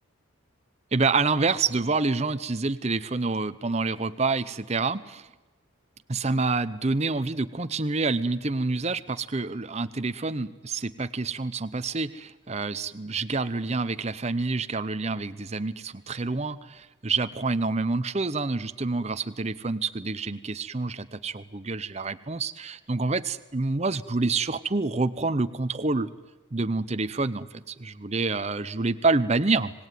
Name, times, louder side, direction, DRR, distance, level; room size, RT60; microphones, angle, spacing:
voice 1, 0.9-5.3 6.1-26.1 26.5-29.7, right 3 dB, 30° right, 12 dB, 0.7 m, -27 dB
26.0 x 19.0 x 9.4 m, 1.1 s
head